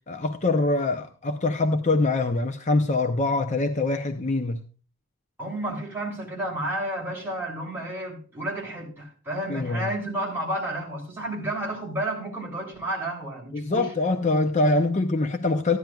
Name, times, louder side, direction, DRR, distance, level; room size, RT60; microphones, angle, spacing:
voice 1, 0.1-4.6 9.5-9.9 13.5-15.8, left 2 dB, 35° left, 0.6 m, -24 dB
voice 2, 5.4-13.9, right 1 dB, 10° right, 3.2 m, -31 dB
14.0 x 10.5 x 2.3 m
head